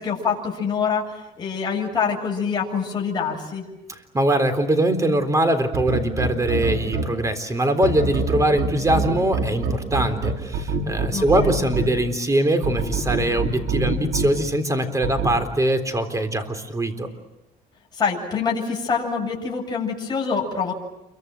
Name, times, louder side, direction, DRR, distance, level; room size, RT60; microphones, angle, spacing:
voice 1, 0.0-3.6 11.1-11.6 17.9-20.7, left 6 dB, 25° left, -2 dB, 7.8 m, -25 dB
voice 2, 4.1-17.1, right 1 dB, 20° right, 8 dB, 3.7 m, -22 dB
sound 1, 5.7-7.0 7.8-11.8 12.6-14.2 15.0-15.3, right 4 dB, 75° right, 6.6 m, -24 dB
29.0 x 24.0 x 7.8 m, 0.97 s
cardioid pair, 110°, 17 cm